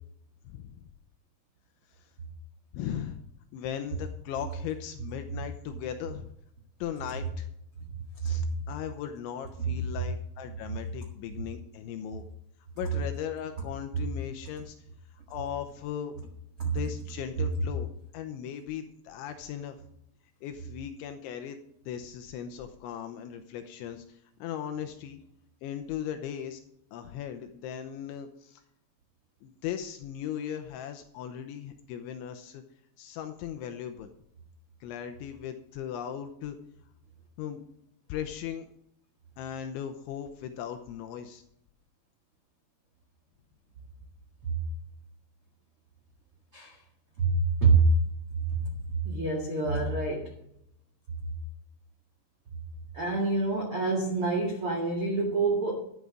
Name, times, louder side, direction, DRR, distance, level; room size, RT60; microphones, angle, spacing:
voice 1, 0.4-0.9 2.0-2.1 2.7-3.2 3.5-6.3 6.8-7.5 8.2-12.2 12.8-14.8 15.3-16.2 16.6-17.9 18.1-19.8 20.4-25.2 25.6-26.6 26.9-28.6 29.4-32.6 33.0-34.1 34.8-36.6 37.4-37.6 38.1-38.7 39.4-41.4, left 9 dB, 80° left, 7 dB, 2.9 m, -38 dB
voice 2, 47.2-47.9 49.0-50.3 52.9-55.8, right 3 dB, 60° right, -1 dB, 1.4 m, -26 dB
12.5 x 9.4 x 4.9 m, 0.73 s
omnidirectional pair, 5.9 m